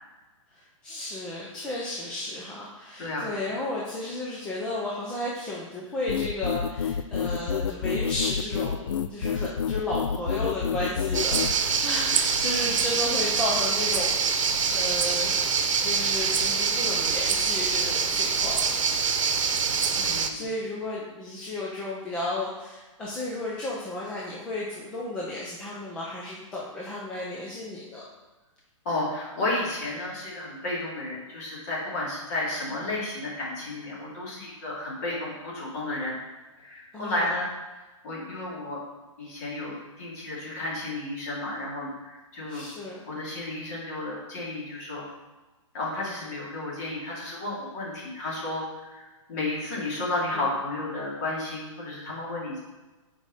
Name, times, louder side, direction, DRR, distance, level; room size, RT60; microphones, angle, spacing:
voice 1, 0.5-15.4 15.8-18.7 19.9-28.1 36.9-37.3 42.5-43.0 50.3-50.5, left 1 dB, 5° left, -6 dB, 0.5 m, -33 dB
voice 2, 3.0-3.3 11.4-11.6 20.0-20.5 28.8-36.1 36.6-37.5 38.0-38.8 39.2-42.6 43.1-45.0 45.7-49.0 49.3-52.6, left 2 dB, 30° left, -5 dB, 2.8 m, -32 dB
sound 1, 6.1-11.5, left 7 dB, 70° left, 0.5 m, -28 dB
sound 2, 11.1-20.3, right 5 dB, 65° right, 0.9 m, -25 dB
6.2 x 4.9 x 6.6 m, 1.2 s
hypercardioid pair, 175°, 17 cm